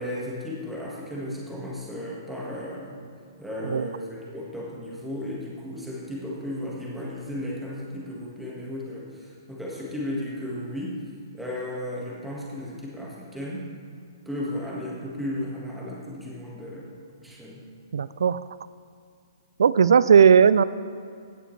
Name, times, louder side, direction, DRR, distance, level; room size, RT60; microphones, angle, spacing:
voice 1, 0.0-3.0 3.4-11.0 11.3-13.7 14.2-16.9 17.2-17.7, left 1 dB, 5° right, -5 dB, 1.6 m, -34 dB
voice 2, 17.9-18.4 19.6-20.6, right 7 dB, 90° right, 17 dB, 0.3 m, -17 dB
16.0 x 6.9 x 3.3 m, 2.3 s
hypercardioid pair, 155°, 2 cm